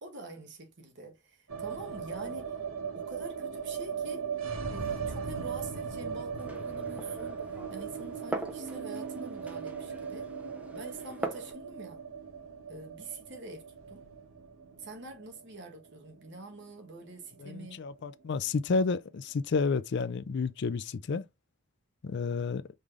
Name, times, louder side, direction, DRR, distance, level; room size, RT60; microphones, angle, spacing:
voice 1, 0.0-2.5 2.9-4.3 4.7-10.3 10.7-12.0 12.7-14.0 14.8-17.8, right 2 dB, 55° right, 1.2 m, -46 dB
sound 1, 1.5-17.6 17.9-18.0 18.2-18.9, right 6 dB, 80° right, 1.0 m, -38 dB
Glass, 6.4-11.5, right 2 dB, 5° right, 0.6 m, -42 dB
voice 2, 17.4-21.2 22.0-22.6, left 4 dB, 55° left, 0.4 m, -30 dB
5.3 x 3.2 x 2.4 m
head